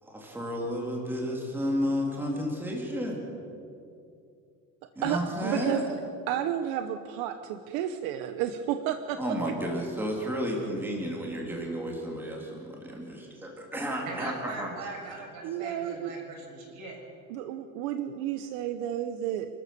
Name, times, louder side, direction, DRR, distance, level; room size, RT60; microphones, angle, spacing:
voice 1, 0.0-3.2 5.0-5.8 9.2-14.7, equal, 5° right, -1 dB, 2.9 m, -32 dB
voice 2, 5.0-5.9 6.3-9.5 15.4-16.1 17.3-19.5, right 10 dB, 80° right, 8 dB, 1.1 m, -31 dB
voice 3, 14.0-17.0, right 3 dB, 60° right, 0 dB, 6.8 m, -41 dB
28.5 x 14.0 x 6.9 m, 2.6 s
cardioid pair, 170°, 32 cm